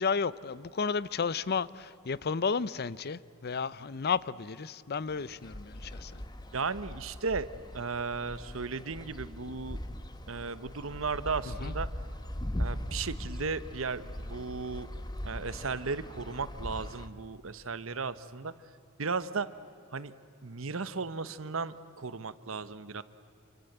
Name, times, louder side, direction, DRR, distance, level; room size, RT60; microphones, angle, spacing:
voice 1, 0.0-6.2 11.5-11.7, left 5 dB, 50° left, 19 dB, 0.6 m, -32 dB
sound 1, 5.1-17.1, equal, 20° left, 1.2 m, -40 dB
voice 2, 6.5-7.5 7.7-9.8 10.3-11.9 12.6-14.9 15.3-18.5 19.0-19.5 19.9-20.1 20.4-23.0, right 4 dB, 70° right, 14 dB, 1.1 m, -35 dB
27.5 x 24.5 x 8.0 m, 2.7 s
head